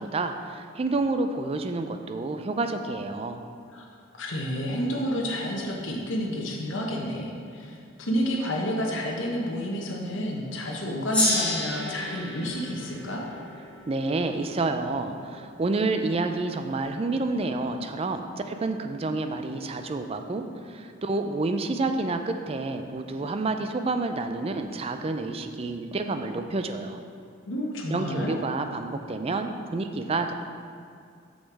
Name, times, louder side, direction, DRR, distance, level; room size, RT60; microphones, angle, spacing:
voice 1, 0.0-3.4 13.9-27.0 27.9-30.3, right 3 dB, 30° right, 7 dB, 0.4 m, -29 dB
voice 2, 4.1-13.2 27.5-28.4, equal, 70° left, -2 dB, 1.0 m, -30 dB
Gong, 11.1-15.9, left 1 dB, 5° left, 1.4 m, -31 dB
6.5 x 6.3 x 4.7 m, 2.3 s
head